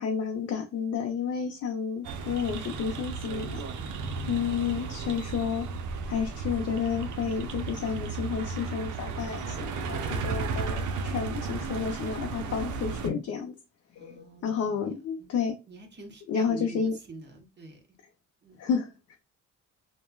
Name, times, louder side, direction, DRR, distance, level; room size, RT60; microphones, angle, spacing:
voice 1, 0.0-3.6 4.3-5.7 6.1-13.5 13.9-15.6 16.3-16.9 18.6-19.2, left 6 dB, 55° left, 0.5 m, -31 dB
sound 1, 2.0-13.1, right 4 dB, 75° right, 0.6 m, -34 dB
voice 2, 14.0-14.9 15.2-15.3 15.7-17.8 18.4-18.7, right 2 dB, 35° right, 0.9 m, -46 dB
3.1 x 2.1 x 2.2 m
cardioid pair, 90°, 30 cm